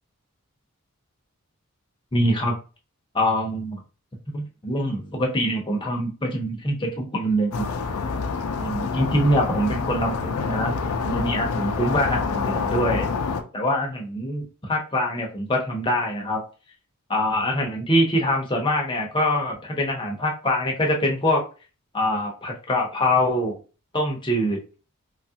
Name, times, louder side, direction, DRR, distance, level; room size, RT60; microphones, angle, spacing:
voice 1, 2.1-2.6 3.1-3.8 4.3-7.6 8.6-10.8 11.0-13.1 13.5-16.4 17.1-21.4 21.9-23.5 23.9-24.6, equal, 20° left, 0 dB, 0.7 m, -24 dB
sound 1, 7.5-13.4, left 4 dB, 80° left, 0.5 m, -27 dB
3.1 x 2.4 x 2.8 m, 0.35 s
head